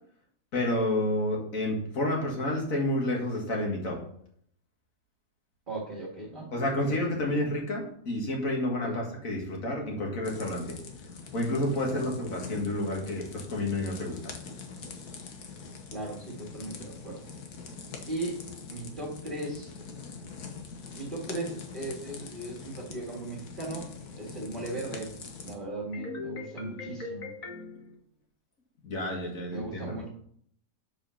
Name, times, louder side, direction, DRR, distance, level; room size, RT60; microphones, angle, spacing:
voice 1, 0.5-4.0 6.5-10.8 11.3-14.3 25.9-27.9 28.8-30.0, left 1 dB, 60° left, 0 dB, 2.3 m, -30 dB
voice 2, 5.7-6.5 6.8-7.0 7.2-7.4 8.8-9.1 11.9-12.1 15.9-17.2 18.1-19.7 21.0-23.9 24.2-25.1 25.4-27.3 29.5-30.1, right 2 dB, 30° right, -4 dB, 2.0 m, -37 dB
sound 1, 10.2-25.5, left 4 dB, 75° left, 1.6 m, -44 dB
7.6 x 5.0 x 5.7 m, 0.63 s
omnidirectional pair, 1.7 m